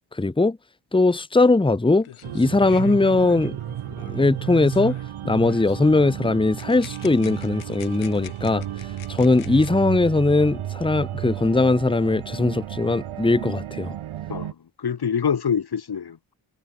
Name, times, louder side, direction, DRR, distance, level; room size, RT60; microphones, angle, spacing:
voice 1, 0.1-0.6 0.9-2.1 2.3-3.6 4.0-5.0 5.2-13.9, left 2 dB, 10° left, 1.1 m, -20 dB
sound 1, 2.0-5.2 5.5-5.9 6.6-9.7, left 10 dB, 85° left, 5.6 m, -47 dB
sound 2, 2.2-14.5, right 11 dB, 85° right, 3.4 m, -33 dB
voice 2, 14.3-16.3, left 7 dB, 50° left, 1.9 m, -26 dB
supercardioid pair, 50°, 49 cm